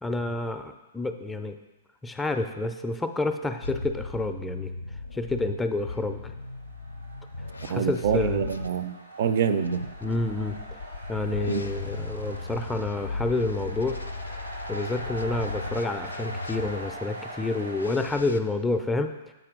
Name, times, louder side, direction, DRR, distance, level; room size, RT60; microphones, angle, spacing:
voice 1, 0.0-1.6 2.0-4.7 5.1-6.4 7.7-8.4 10.0-10.6 11.1-14.0 14.7-19.3, left 2 dB, 10° left, 6 dB, 0.4 m, -29 dB
sound 1, 3.6-8.7 9.6-17.0 17.7-18.4, left 2 dB, 85° left, 0.4 m, -37 dB
sound 2, 6.4-17.9, right 1 dB, 90° right, 1.1 m, -42 dB
voice 2, 7.7-9.9 11.5-11.6, right 7 dB, 55° right, 11 dB, 0.4 m, -26 dB
8.0 x 4.3 x 3.7 m, 1.1 s
figure-of-eight pair, 110°, 0 cm